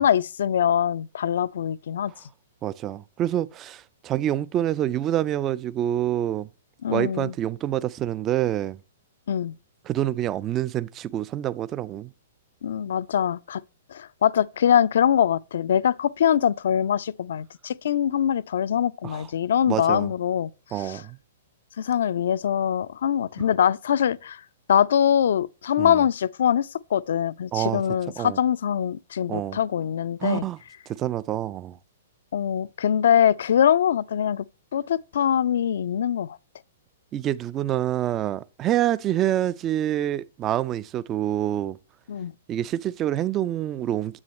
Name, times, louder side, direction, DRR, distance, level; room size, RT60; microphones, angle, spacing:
voice 1, 0.0-2.1 6.8-7.3 9.3-9.5 12.6-13.6 13.9-21.0 21.8-24.4 24.7-30.5 32.3-34.5 34.7-36.4 42.1-42.3, left 9 dB, 60° left, 0.4 m, -23 dB
voice 2, 2.6-6.5 6.9-8.8 9.9-12.1 19.0-19.3 19.7-20.1 20.7-21.2 25.8-26.0 27.5-27.8 28.2-28.4 29.3-29.6 30.2-30.6 31.0-31.8 37.1-41.8 42.5-44.2, right 12 dB, 25° right, 0.4 m, -26 dB
9.7 x 8.3 x 3.0 m
figure-of-eight pair, 110°, 0 cm